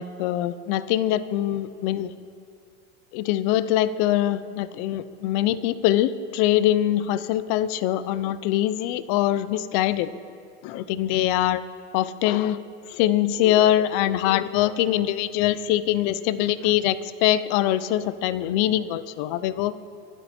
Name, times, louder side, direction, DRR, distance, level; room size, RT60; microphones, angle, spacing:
voice 1, 0.0-2.1 3.1-10.1 10.6-11.6 11.9-19.7, left 12 dB, 45° left, 16 dB, 0.6 m, -23 dB
25.0 x 11.5 x 4.3 m, 2.4 s
supercardioid pair, 160°, 36 cm